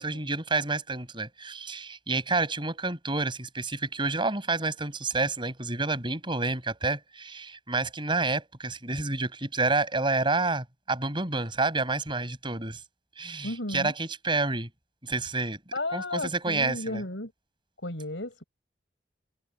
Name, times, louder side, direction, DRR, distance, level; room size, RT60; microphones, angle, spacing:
voice 1, 0.0-12.8 13.2-14.7 15.0-15.6 15.9-17.0, right 3 dB, 25° right, 6.9 m, -29 dB
voice 2, 13.4-13.9 15.7-17.3 17.8-18.4, left 2 dB, 90° left, 7.6 m, -34 dB
head